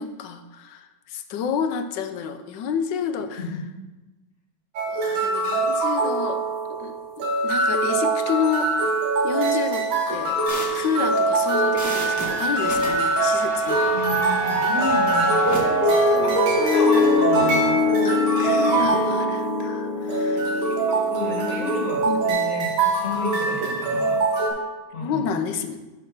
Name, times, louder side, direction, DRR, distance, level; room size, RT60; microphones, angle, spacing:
voice 1, 0.0-3.4 4.9-6.4 6.8-10.4 10.7-14.0 16.1-16.4 18.0-20.8 22.0-22.2 24.5-24.6 25.0-25.8, left 6 dB, 70° left, 8 dB, 1.2 m, -30 dB
sound 1, 4.8-24.5, right 3 dB, 85° right, 2.1 m, -23 dB
sound 2, 10.5-15.6, equal, 10° right, 1.1 m, -34 dB
Piano, 12.8-22.3, left 3 dB, 55° right, 2.9 m, -24 dB
voice 2, 13.9-17.8 18.9-19.1 20.3-24.2 24.9-25.3, left 3 dB, 40° left, 0 dB, 1.5 m, -32 dB
6.3 x 5.6 x 5.8 m, 1.1 s
omnidirectional pair, 2.2 m